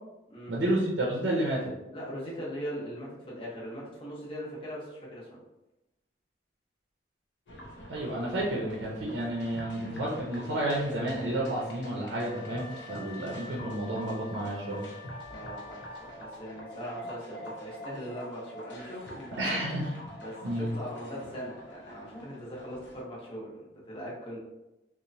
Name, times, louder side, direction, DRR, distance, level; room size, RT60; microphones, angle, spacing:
voice 1, 0.5-1.7 7.9-14.8 19.4-19.9 20.4-20.7, right 1 dB, 80° right, -3 dB, 0.5 m, -31 dB
voice 2, 1.9-5.3 15.3-19.7 20.2-24.4, equal, 30° left, -5 dB, 0.7 m, -40 dB
sound 1, 7.5-23.0, equal, 80° left, 0.6 m, -46 dB
Wind instrument woodwind instrument, 12.0-16.5, left 3 dB, 25° right, 0.3 m, -48 dB
2.9 x 2.1 x 2.6 m, 0.95 s
head